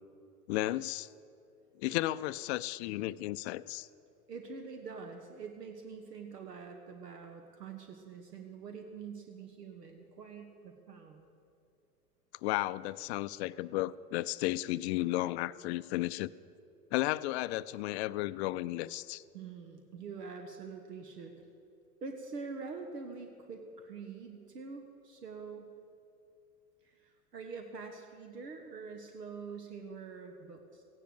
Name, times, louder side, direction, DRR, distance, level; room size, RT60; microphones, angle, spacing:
voice 1, 0.5-1.1 1.8-3.9 12.4-16.3 16.9-19.2, left 17 dB, 45° left, 16 dB, 0.5 m, -33 dB
voice 2, 4.3-11.3 19.3-21.3 22.0-25.7 26.8-30.8, right 5 dB, 85° right, 5 dB, 1.4 m, -45 dB
16.0 x 10.0 x 7.7 m, 2.6 s
hypercardioid pair, 95°, 47 cm